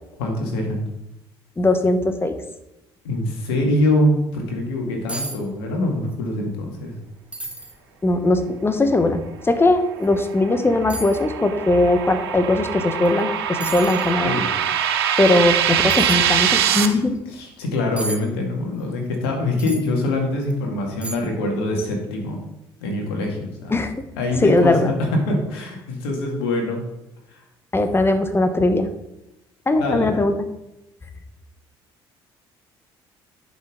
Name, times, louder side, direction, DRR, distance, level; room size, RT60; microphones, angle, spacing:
voice 1, 0.2-0.9 3.0-6.9 14.2-14.5 17.4-22.4 22.8-23.7 24.2-26.8 29.8-30.1, left 1 dB, 70° left, 1 dB, 2.0 m, -24 dB
voice 2, 1.6-2.4 8.0-14.4 15.2-17.2 23.7-23.9 24.4-24.9 27.7-28.9 29.7-30.3, left 2 dB, 15° left, 8 dB, 1.2 m, -19 dB
sound 1, 4.7-4.8 5.1-5.4 5.7-6.2 6.6-6.7 7.3-7.7 8.4-8.5 10.0-10.1 10.9-11.2 13.0-13.2 13.6-14.1 15.9-16.2 18.0-18.2 19.6-19.9 20.4-20.5 21.0-21.4 21.7-21.8, right 2 dB, 10° right, 1.5 m, -32 dB
sound 2, 10.0-16.9, right 9 dB, 70° right, 0.7 m, -23 dB
10.0 x 5.9 x 3.8 m, 0.92 s
figure-of-eight pair, 50°, 13 cm